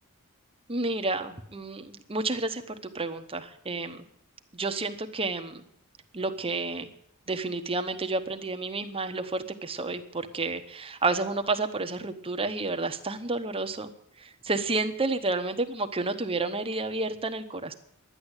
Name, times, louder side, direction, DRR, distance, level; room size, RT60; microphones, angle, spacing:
voice 1, 0.7-4.0 4.5-5.6 6.1-6.9 7.3-13.9 14.2-17.7, right 3 dB, 25° right, 7 dB, 1.0 m, -30 dB
11.5 x 10.0 x 8.1 m, 0.75 s
head